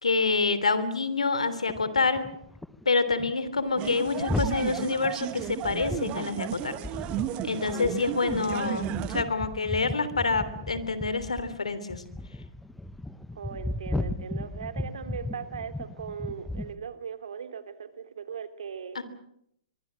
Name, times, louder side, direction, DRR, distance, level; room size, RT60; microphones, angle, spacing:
voice 1, 0.0-2.2 2.8-6.8 7.4-12.0 18.9-19.0, left 4 dB, 85° left, 14 dB, 3.2 m, -27 dB
sound 1, 1.7-2.8 3.1-3.3 3.6-16.8, left 2 dB, 5° left, 1.2 m, -36 dB
sound 2, 3.8-9.2, right 14 dB, 35° right, 1.4 m, -34 dB
voice 2, 13.3-19.0, right 7 dB, 75° right, 10 dB, 2.8 m, -39 dB
24.0 x 23.0 x 7.5 m, 0.73 s
hypercardioid pair, 120°, 3 cm